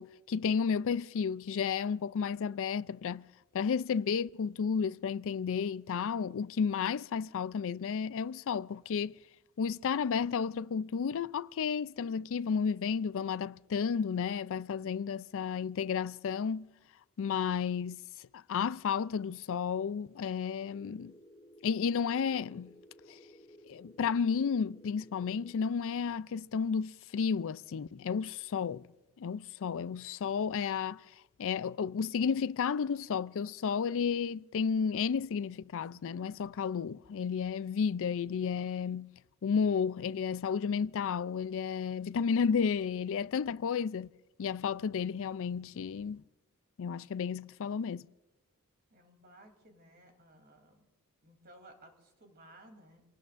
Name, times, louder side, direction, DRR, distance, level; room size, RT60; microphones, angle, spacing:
voice 1, 0.0-3.2 3.5-9.2 9.6-16.7 17.2-18.0 18.3-21.1 21.6-22.7 23.1-23.2 23.7-28.9 29.2-31.0 31.4-39.1 39.4-44.1 44.4-46.2 46.8-48.1, left 6 dB, 65° left, 0.4 m, -32 dB
sound 1, 20.6-25.6, equal, 20° left, 2.0 m, -57 dB
voice 2, 48.9-50.9 51.2-53.0, right 1 dB, 45° right, 3.2 m, -57 dB
26.5 x 19.0 x 2.5 m
head